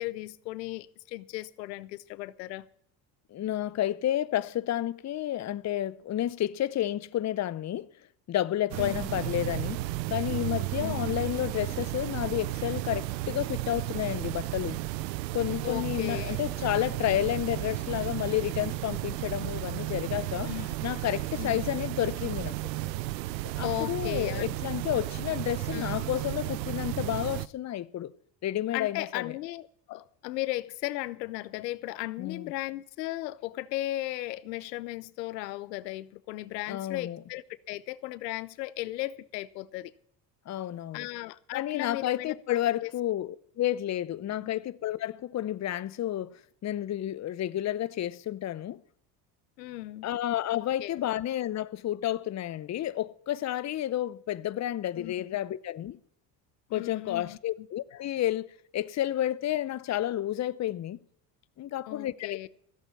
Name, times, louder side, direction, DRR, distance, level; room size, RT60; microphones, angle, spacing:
voice 1, 0.0-2.7 8.8-9.1 10.8-11.1 15.6-16.4 20.5-20.8 21.4-21.7 23.6-24.6 25.7-26.0 28.7-39.9 40.9-42.9 44.4-44.5 49.6-50.1 50.8-51.0 55.0-55.1 56.7-57.7 61.9-62.5, left 17 dB, 90° left, 0.7 m, -36 dB
voice 2, 3.3-7.9 8.3-14.8 15.3-20.5 20.8-22.6 23.6-28.1 28.4-29.3 32.2-32.5 36.7-37.2 40.5-41.1 41.5-46.4 46.6-48.8 50.0-56.0 56.7-58.5 58.7-61.0 61.6-62.4, left 12 dB, 35° left, 0.7 m, -31 dB
sound 1, 8.7-27.5, right 17 dB, 90° right, 0.6 m, -33 dB
15.0 x 8.2 x 7.2 m
hypercardioid pair, 70°, 48 cm